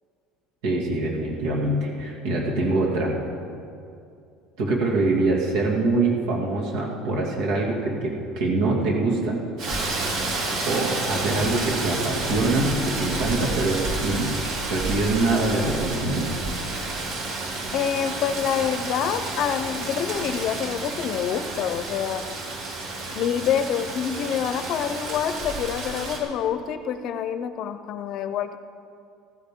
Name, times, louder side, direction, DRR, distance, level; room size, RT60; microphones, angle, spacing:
voice 1, 0.6-3.1 4.6-9.4 10.7-14.3 14.7-16.3, right 2 dB, 75° right, -1 dB, 2.4 m, -24 dB
Rain, 9.6-26.2, right 2 dB, 60° right, 3.2 m, -30 dB
voice 2, 17.7-22.2 23.1-28.6, left 8 dB, 50° left, 10 dB, 0.6 m, -27 dB
16.0 x 15.0 x 3.8 m, 2.5 s
cardioid pair, 150°, 0 cm